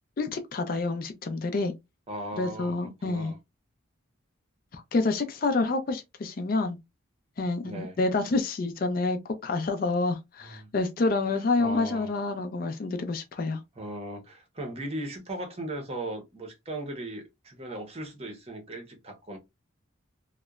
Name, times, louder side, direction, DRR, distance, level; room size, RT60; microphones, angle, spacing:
voice 1, 0.2-1.7 2.4-3.3 4.7-6.8 7.4-13.6, left 3 dB, 45° left, 0.3 m, -28 dB
voice 2, 2.1-3.4 7.6-8.0 10.4-10.7 11.3-12.2 13.8-19.4, right 1 dB, 30° right, 0.7 m, -38 dB
2.8 x 2.1 x 2.3 m
head